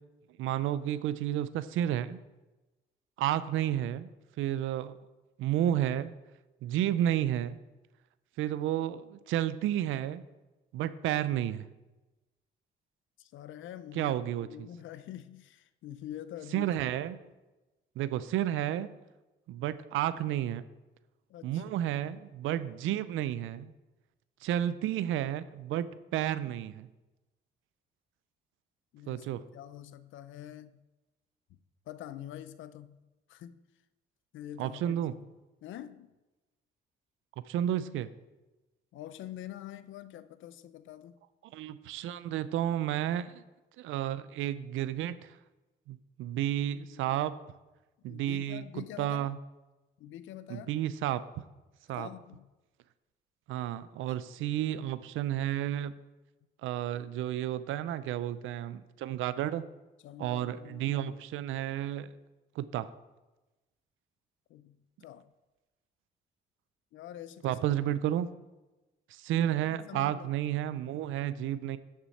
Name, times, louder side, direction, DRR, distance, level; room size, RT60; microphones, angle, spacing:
voice 1, 0.4-2.2 3.2-4.1 4.4-5.0 5.4-6.2 6.6-7.6 8.4-10.2 10.7-11.7 13.9-14.7 16.5-17.2 18.0-18.9 19.5-20.6 21.4-23.7 24.4-26.9 29.1-29.4 34.6-35.1 37.5-38.1 41.4-43.4 43.8-45.4 45.9-47.3 48.0-49.4 50.5-51.2 51.9-52.1 53.5-55.9 56.6-59.6 60.2-62.1 62.6-62.9 67.4-68.3 69.1-71.8, right 12 dB, 85° right, 0.5 m, -31 dB
voice 2, 13.2-16.7 21.3-21.6 28.9-30.8 31.5-31.6 31.9-33.0 33.3-33.6 34.3-35.3 35.6-36.1 38.9-41.2 46.9-47.2 48.0-49.3 50.0-50.8 52.0-52.5 60.0-61.5 64.5-65.3 66.9-67.6 69.3-70.3, left 11 dB, 75° left, 0.5 m, -46 dB
10.5 x 6.1 x 4.2 m
cardioid pair, 90°, 20 cm